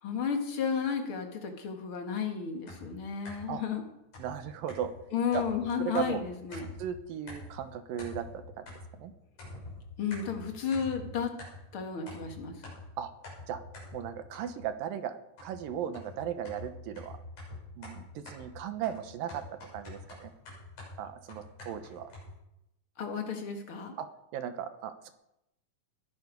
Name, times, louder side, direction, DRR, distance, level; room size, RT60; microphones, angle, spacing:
voice 1, 0.0-3.8 5.1-6.7 10.0-11.3 11.7-12.5 23.0-23.9, left 6 dB, 45° left, 4 dB, 2.2 m, -33 dB
sound 1, 2.7-3.6 4.1-7.0 7.3-7.7 8.0-9.1 9.4-11.8 12.1-14.8 15.4-22.3, left 2 dB, 70° left, 8.4 m, -47 dB
voice 2, 4.2-4.9 5.3-5.4 5.8-6.2 6.8-8.7 8.9-9.1 13.0-13.1 13.5-13.6 13.9-17.2 17.8-19.4 19.7-20.3 21.0-22.1 24.0-25.1, right 9 dB, 80° right, 9 dB, 2.8 m, -36 dB
20.5 x 11.0 x 5.3 m, 0.87 s
omnidirectional pair, 4.1 m